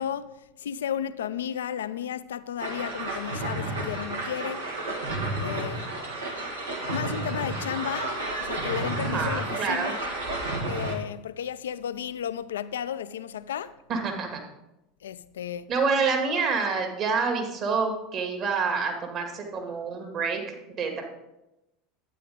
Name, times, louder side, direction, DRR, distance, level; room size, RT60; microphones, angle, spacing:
voice 1, 0.0-4.7 5.4-6.0 6.9-10.0 10.6-13.7 15.0-15.7, left 9 dB, 75° left, 0.4 m, -33 dB
sound 1, 2.6-11.0, right 2 dB, 85° right, 1.6 m, -31 dB
voice 2, 9.0-10.0 13.9-14.4 15.7-21.0, right 5 dB, 45° right, 2.3 m, -27 dB
12.0 x 9.2 x 3.7 m
hypercardioid pair, 80°, 0 cm